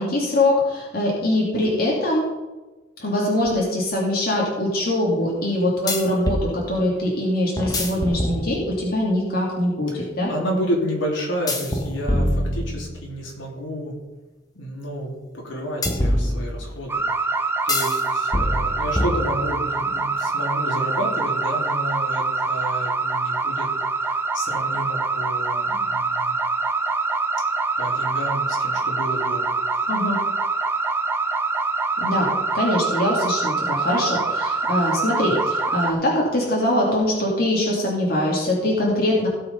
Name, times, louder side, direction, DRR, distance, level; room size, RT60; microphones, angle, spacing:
voice 1, 0.0-2.3 3.0-10.3 29.9-30.2 32.0-39.3, left 1 dB, 50° left, -4 dB, 2.7 m, -22 dB
sound 1, 3.5-3.6 5.9-6.5 7.6-8.9 11.5-13.2 15.8-16.8 17.7-18.0 18.3-19.7, left 1 dB, 20° left, 1.3 m, -25 dB
voice 2, 9.9-13.9 14.6-23.7 24.0-26.4 27.8-29.5, equal, 75° left, -2 dB, 3.4 m, -30 dB
sound 2, 16.9-35.9, right 3 dB, 10° right, 0.6 m, -24 dB
17.0 x 5.8 x 5.4 m, 1.1 s
head